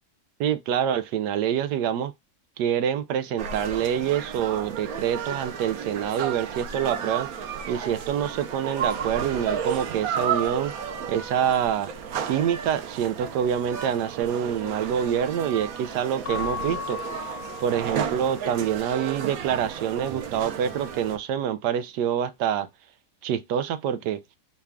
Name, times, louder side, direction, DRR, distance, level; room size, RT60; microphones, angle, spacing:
voice 1, 0.4-2.1 2.6-7.3 7.7-10.7 11.1-11.9 12.3-17.0 17.6-22.7 23.2-24.2, right 9 dB, 90° right, 1.2 m, -26 dB
sound 1, 3.4-21.2, right 7 dB, 65° right, 1.1 m, -33 dB
Keyboard (musical) / Bell, 16.2-18.7, left 7 dB, 70° left, 1.0 m, -36 dB
4.8 x 2.3 x 3.4 m
omnidirectional pair, 1.8 m